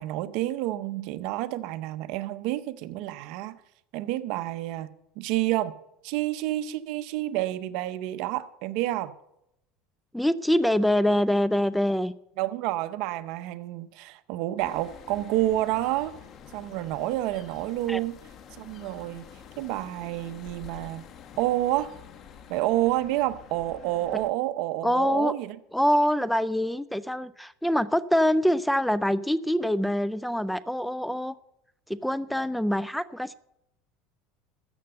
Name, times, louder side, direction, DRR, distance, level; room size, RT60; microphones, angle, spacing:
voice 1, 0.0-3.6 3.9-4.9 5.2-5.8 6.0-9.1 12.4-16.2 16.5-18.1 18.6-19.2 19.6-21.1 21.4-21.9 22.5-25.6, right 15 dB, 65° right, 0.7 m, -29 dB
voice 2, 10.1-12.1 17.9-18.0 24.8-25.3 25.7-31.3 31.9-33.3, equal, ahead, 0.4 m, -25 dB
sound 1, 14.6-24.3, left 7 dB, 45° left, 1.4 m, -48 dB
13.5 x 7.9 x 6.7 m
supercardioid pair, 120°, 0 cm